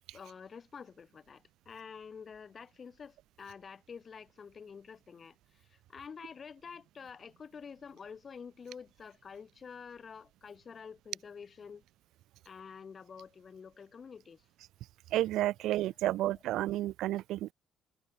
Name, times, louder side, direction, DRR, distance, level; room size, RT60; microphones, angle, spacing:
voice 1, 0.1-11.8 12.4-14.4, left 6 dB, 35° left, 2.4 m, -48 dB
voice 2, 15.1-17.5, right 15 dB, 80° right, 0.5 m, -31 dB
cardioid pair, 110°, 0 cm